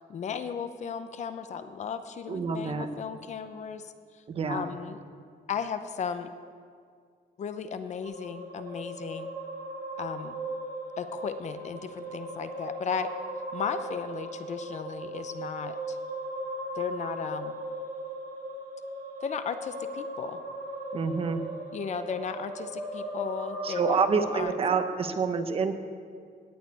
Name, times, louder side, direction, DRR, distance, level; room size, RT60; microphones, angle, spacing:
voice 1, 0.1-5.0 5.5-6.3 7.4-9.3 10.0-10.4 11.0-13.1 13.5-16.0 16.7-17.6 19.2-20.4 21.7-24.5, left 7 dB, 40° left, 10 dB, 0.7 m, -35 dB
voice 2, 2.3-2.9 4.3-4.6 20.9-21.4 23.6-25.7, right 5 dB, 35° right, 8 dB, 0.9 m, -27 dB
sound 1, 8.0-24.4, right 1 dB, 60° right, 3.9 m, -38 dB
17.0 x 6.5 x 9.6 m, 2.1 s
cardioid pair, 175°, 17 cm